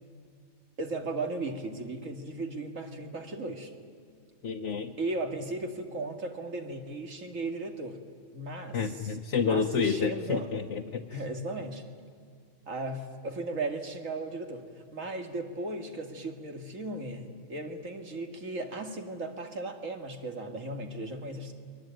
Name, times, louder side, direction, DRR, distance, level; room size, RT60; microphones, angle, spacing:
voice 1, 0.8-3.7 5.0-8.0 8.3-9.2 9.5-10.6 11.1-11.8 12.7-21.5, right 2 dB, 80° right, 4 dB, 2.7 m, -36 dB
voice 2, 4.4-4.9 8.7-11.0, left 5 dB, 65° left, 2 dB, 1.2 m, -29 dB
29.0 x 22.0 x 9.2 m, 2.1 s
omnidirectional pair, 1.4 m